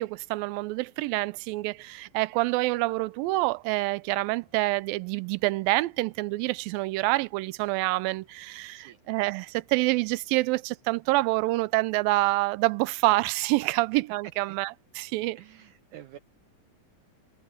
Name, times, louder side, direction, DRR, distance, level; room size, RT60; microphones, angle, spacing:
voice 1, 0.0-14.7 15.0-15.4, right 20 dB, 90° right, 2.4 m, -27 dB
voice 2, 15.4-16.2, right 11 dB, 70° right, 2.1 m, -48 dB
omnidirectional pair, 4.0 m